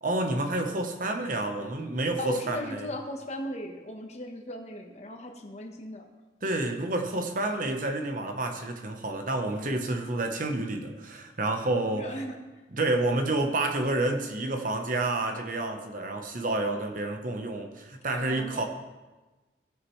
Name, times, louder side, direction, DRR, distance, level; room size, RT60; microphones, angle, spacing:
voice 1, 0.0-2.9 6.4-12.1 12.7-18.6, right 2 dB, 45° right, 4 dB, 0.9 m, -29 dB
voice 2, 2.2-6.0 11.9-12.4 18.1-18.6, left 1 dB, 40° left, 3 dB, 1.1 m, -37 dB
16.0 x 6.7 x 3.1 m, 1.2 s
head